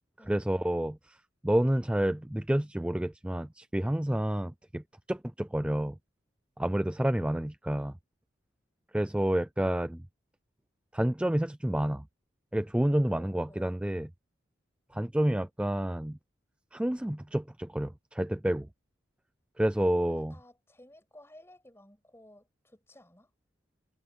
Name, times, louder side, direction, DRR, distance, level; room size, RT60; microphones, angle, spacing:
voice 1, 0.3-1.2 1.4-4.8 5.1-6.0 6.6-7.9 8.9-10.0 10.9-12.0 12.5-14.1 14.9-16.2 16.7-18.7 19.6-20.3, right 1 dB, 5° right, 0.3 m, -29 dB
voice 2, 13.1-13.8 20.1-23.3, left 1 dB, 10° left, 7.1 m, -55 dB
head